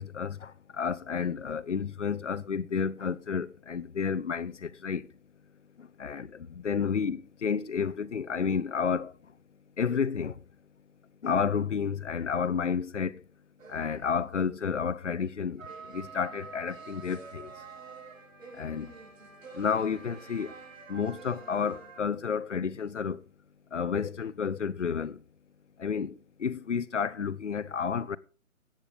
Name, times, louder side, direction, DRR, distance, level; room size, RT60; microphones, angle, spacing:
voice 1, 0.0-5.0 5.8-9.1 9.8-10.3 11.2-13.2 13.7-15.7 15.9-17.5 18.6-18.9 19.5-20.5 20.9-23.2 23.7-25.2 25.8-28.2, left 6 dB, 55° left, 0.8 m, -31 dB
sound 1, 13.6-14.4 15.6-22.0, right 5 dB, 65° right, 4.4 m, -47 dB
15.5 x 9.0 x 5.1 m
hypercardioid pair, 175°, 43 cm